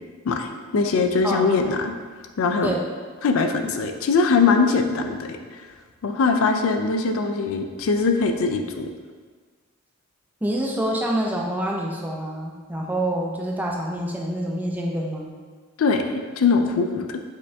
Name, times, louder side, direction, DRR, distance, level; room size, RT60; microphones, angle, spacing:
voice 1, 0.2-1.9 2.4-2.8 3.2-5.4 6.0-8.9 15.8-17.2, left 4 dB, 65° left, 5 dB, 0.3 m, -21 dB
voice 2, 10.4-15.3, right 1 dB, 10° right, -1 dB, 0.4 m, -26 dB
5.3 x 2.6 x 3.3 m, 1.5 s
head